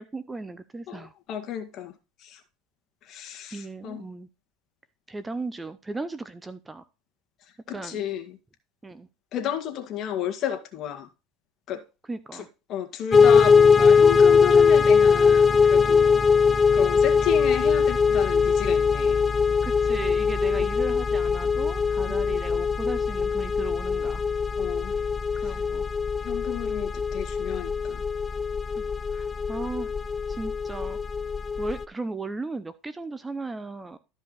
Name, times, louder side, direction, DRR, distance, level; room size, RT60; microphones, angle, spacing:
voice 1, 0.0-1.1 3.5-4.3 5.1-6.8 7.7-8.0 8.8-9.1 12.0-12.5 19.6-24.2 25.4-25.9 28.8-28.9 29.1-29.9 30.3-31.0 31.6-34.0, right 3 dB, 15° right, 0.7 m, -36 dB
voice 2, 0.9-1.9 2.2-2.4 3.1-4.0 7.7-8.4 9.3-11.1 11.7-11.8 12.7-16.2 16.7-19.2 22.1-22.2 24.6-24.9 25.4-25.5 26.2-28.0, left 11 dB, 45° left, 2.0 m, -32 dB
sound 1, 13.1-31.8, left 5 dB, 20° left, 0.6 m, -21 dB
13.0 x 5.3 x 4.0 m
supercardioid pair, 115°, 0 cm